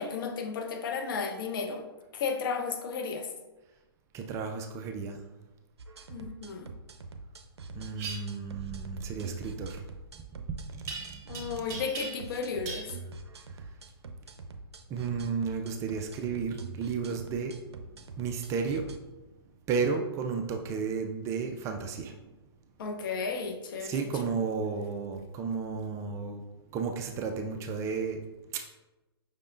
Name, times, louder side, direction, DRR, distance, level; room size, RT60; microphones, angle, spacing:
voice 1, 0.0-1.9 2.1-3.3 6.1-6.7 11.3-12.9 22.8-24.3, left 5 dB, 55° left, 4 dB, 0.7 m, -34 dB
voice 2, 4.1-5.2 7.8-9.8 10.7-11.4 14.9-17.6 18.2-18.8 19.7-22.2 23.8-26.4 26.7-28.2 28.5-28.6, right 5 dB, 20° right, 4 dB, 0.3 m, -33 dB
sound 1, 5.8-19.0, right 3 dB, 85° right, 0.5 m, -44 dB
sound 2, 8.0-8.2 10.9-11.4 11.7-12.4 12.7-12.9, right 5 dB, 45° right, 1.2 m, -38 dB
5.6 x 3.4 x 2.5 m, 1.1 s
hypercardioid pair, 120°, 14 cm